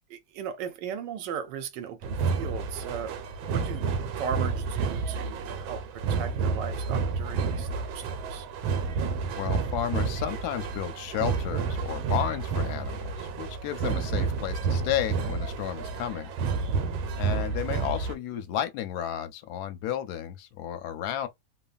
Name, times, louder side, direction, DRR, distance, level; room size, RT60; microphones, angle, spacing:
voice 1, 0.1-3.2 3.5-3.9 4.2-8.5, right 8 dB, 70° right, 1.3 m, -37 dB
sound 1, 2.0-18.2, right 5 dB, 90° right, 1.4 m, -30 dB
voice 2, 9.4-16.3 17.2-21.3, left 11 dB, 70° left, 1.0 m, -32 dB
3.1 x 2.2 x 2.4 m
omnidirectional pair, 2.1 m